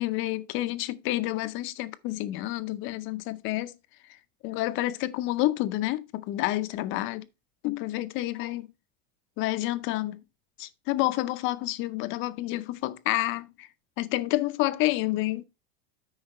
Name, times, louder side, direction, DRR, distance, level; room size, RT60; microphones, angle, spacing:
voice 1, 0.0-3.7 4.4-7.3 7.6-8.7 9.4-10.2 10.6-13.7 14.0-15.4, left 17 dB, 35° left, 0.6 m, -29 dB
8.8 x 5.4 x 4.1 m
supercardioid pair, 160°, 33 cm